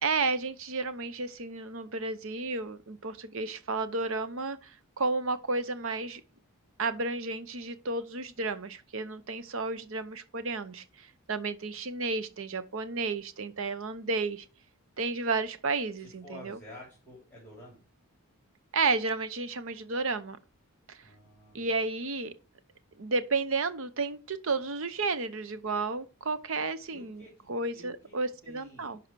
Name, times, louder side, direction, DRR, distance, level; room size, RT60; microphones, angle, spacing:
voice 1, 0.0-6.2 6.8-14.5 15.0-16.6 18.7-20.4 20.9-21.0 21.5-22.3 23.0-29.0, right 3 dB, 65° right, 0.8 m, -32 dB
voice 2, 16.0-17.8 21.0-21.7 26.9-27.5 27.7-28.1 28.4-29.0, equal, 10° left, 3.2 m, -50 dB
11.0 x 4.7 x 4.6 m
head